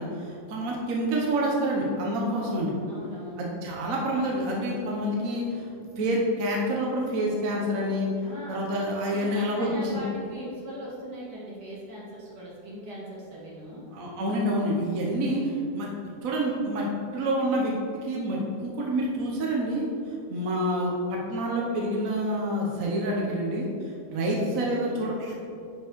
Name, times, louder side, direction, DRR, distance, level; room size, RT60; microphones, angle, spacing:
voice 1, 0.0-2.7 3.4-5.7 6.0-8.1 8.5-10.0 13.9-15.9 16.2-16.9 17.1-25.4, right 1 dB, 60° right, -2 dB, 1.3 m, -28 dB
voice 2, 2.9-3.4 8.2-8.6 9.1-13.8, equal, 80° right, -7 dB, 2.6 m, -40 dB
10.0 x 5.2 x 3.1 m, 2.6 s
omnidirectional pair, 1.7 m